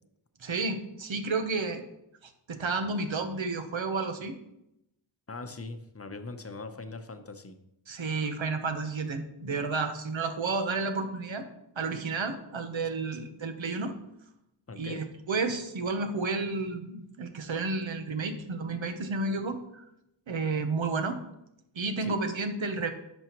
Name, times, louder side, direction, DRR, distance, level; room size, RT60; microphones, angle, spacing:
voice 1, 0.4-1.8 2.2-4.4 7.9-11.5 11.8-13.9 14.8-19.8 20.3-21.2 21.7-22.9, right 3 dB, 80° right, 7 dB, 1.0 m, -31 dB
voice 2, 5.3-7.6 14.7-15.1 22.0-22.2, left 3 dB, 30° left, 7 dB, 0.8 m, -41 dB
11.0 x 6.3 x 3.0 m, 0.83 s
wide cardioid pair, 75°, 46 cm